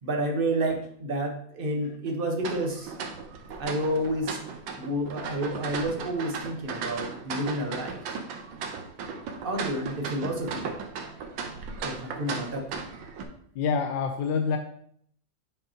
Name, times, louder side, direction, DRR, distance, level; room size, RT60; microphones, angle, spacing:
voice 1, 0.0-2.9 3.6-4.4 4.7-8.0 9.4-10.7 11.8-13.0, right 1 dB, 40° right, 2 dB, 0.9 m, -30 dB
sound 1, 2.4-13.2, right 5 dB, 85° right, 1.5 m, -36 dB
voice 2, 13.6-14.6, left 5 dB, 80° left, 5 dB, 1.3 m, -26 dB
7.3 x 5.5 x 2.8 m, 0.65 s
omnidirectional pair, 2.0 m